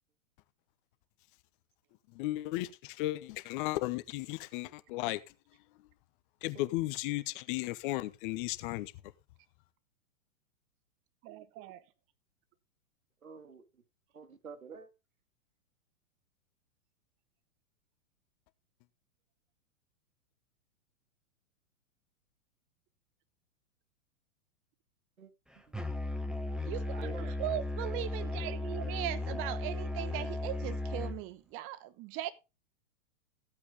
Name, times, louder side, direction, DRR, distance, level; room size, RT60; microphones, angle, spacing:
voice 1, 2.1-5.2 6.4-8.9, left 18 dB, 40° left, 1.0 m, -35 dB
voice 2, 11.2-11.8 26.6-32.3, right 13 dB, 30° right, 1.1 m, -39 dB
voice 3, 13.2-13.6 14.1-14.9 25.2-25.7 26.9-27.3, right 5 dB, 85° right, 2.2 m, -48 dB
Musical instrument, 25.7-31.2, left 2 dB, ahead, 0.9 m, -36 dB
15.0 x 8.3 x 3.5 m
hypercardioid pair, 110°, 41 cm